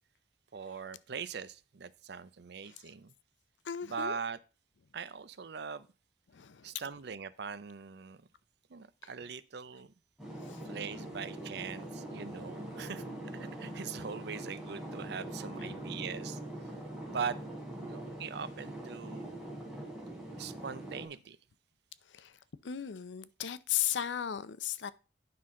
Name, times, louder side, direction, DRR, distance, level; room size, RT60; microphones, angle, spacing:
voice 1, 0.5-3.1 3.8-4.4 4.9-5.9 6.6-8.2 8.7-9.9 10.6-13.0 13.3-16.4 17.1-17.4 17.8-19.4 20.4-21.4, right 6 dB, 65° right, 0.5 m, -41 dB
voice 2, 3.6-4.2 6.3-6.7 9.0-9.1 10.4-10.6 10.9-11.1 15.6-15.8 22.1-24.9, left 10 dB, 90° left, 0.5 m, -37 dB
sound 1, 10.2-21.1, right 1 dB, ahead, 3.5 m, -43 dB
9.4 x 5.8 x 3.8 m
head